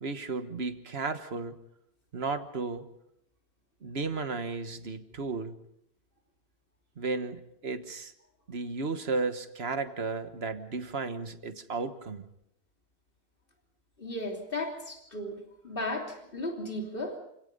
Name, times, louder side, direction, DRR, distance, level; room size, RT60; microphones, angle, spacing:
voice 1, 0.0-1.5 2.1-2.9 3.8-5.5 7.0-8.1 8.5-12.2, right 4 dB, 75° right, 9 dB, 1.6 m, -34 dB
voice 2, 14.0-15.4 15.6-17.2, left 2 dB, 60° left, 1 dB, 3.4 m, -35 dB
28.0 x 17.5 x 5.4 m, 0.77 s
omnidirectional pair, 1.1 m